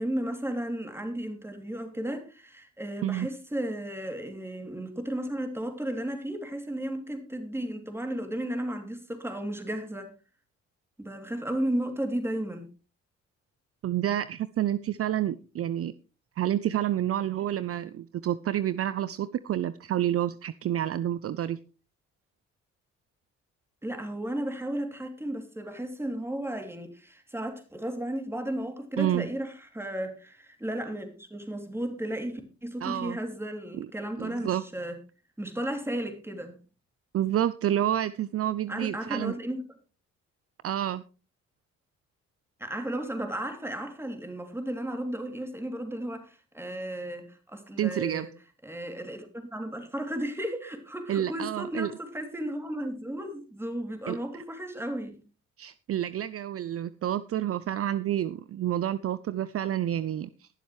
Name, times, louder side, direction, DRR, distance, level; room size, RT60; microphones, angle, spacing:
voice 1, 0.0-10.1 11.0-12.7 23.8-35.0 35.4-36.6 38.7-39.6 42.6-48.3 48.6-55.2, right 1 dB, 10° right, 5 dB, 2.9 m, -34 dB
voice 2, 13.8-15.9 16.4-21.6 29.0-29.3 32.8-33.2 33.8-33.9 34.2-34.6 37.1-39.3 40.6-41.0 47.8-48.3 51.1-51.9 54.1-54.4 55.6-60.5, right 11 dB, 50° right, 15 dB, 0.5 m, -29 dB
21.5 x 7.2 x 3.2 m, 0.33 s
cardioid pair, 90°, 30 cm